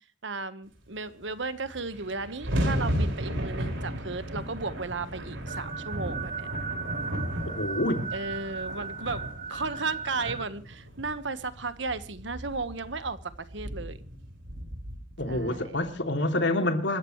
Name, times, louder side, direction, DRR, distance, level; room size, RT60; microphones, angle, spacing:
voice 1, 0.2-6.5 8.1-14.0 15.3-15.8, right 3 dB, 70° right, 1.4 m, -35 dB
sound 1, 1.3-1.4 1.6-15.9, equal, 90° right, 5.4 m, -35 dB
sound 2, 5.5-10.5, right 5 dB, 45° right, 1.9 m, -37 dB
voice 2, 7.5-8.1 15.2-17.0, left 1 dB, 65° left, 2.9 m, -27 dB
28.5 x 14.5 x 3.2 m
head